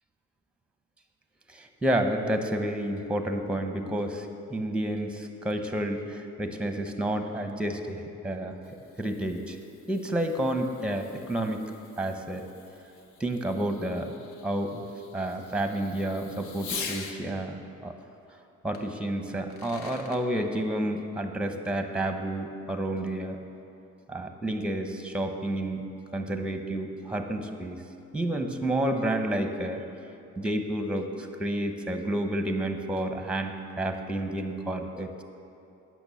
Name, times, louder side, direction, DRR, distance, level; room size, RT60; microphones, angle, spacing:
voice 1, 1.5-8.6 9.0-9.6 9.9-11.6 12.0-12.4 13.2-14.1 14.4-14.8 15.1-17.9 18.6-23.4 24.1-25.8 26.1-27.8 28.1-29.8 30.4-35.1, right 1 dB, 5° right, 5 dB, 0.8 m, -30 dB
Fireworks, 8.4-17.2 18.7-18.8 19.4-20.2, left 5 dB, 80° left, 0.9 m, -44 dB
8.8 x 6.1 x 7.0 m, 2.8 s
cardioid pair, 90°, 30 cm